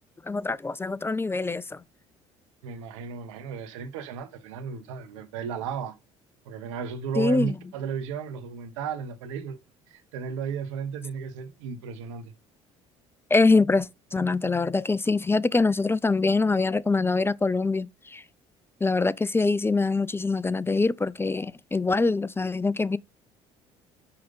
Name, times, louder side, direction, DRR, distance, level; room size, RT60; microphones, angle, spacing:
voice 1, 0.3-1.8 7.2-7.6 13.3-18.2 18.8-23.0, left 3 dB, 15° left, 0.4 m, -24 dB
voice 2, 2.6-5.9 6.4-9.6 9.9-12.3, right 7 dB, 80° right, 1.0 m, -34 dB
5.6 x 4.9 x 5.4 m
hypercardioid pair, 60°, 16 cm